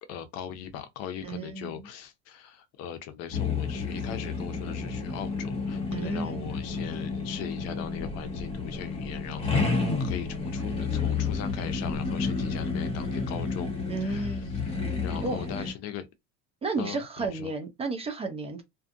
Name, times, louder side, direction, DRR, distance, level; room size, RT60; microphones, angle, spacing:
voice 1, 0.1-9.7 10.0-13.7 14.0-16.1 16.8-17.5, left 9 dB, 50° left, 0.6 m, -39 dB
voice 2, 1.2-1.7 5.9-6.5 13.9-14.6 15.2-15.7 16.6-18.6, right 3 dB, 20° right, 0.4 m, -33 dB
sound 1, 3.3-15.7, left 4 dB, 20° left, 1.0 m, -31 dB
2.6 x 2.4 x 2.5 m
supercardioid pair, 135°, 33 cm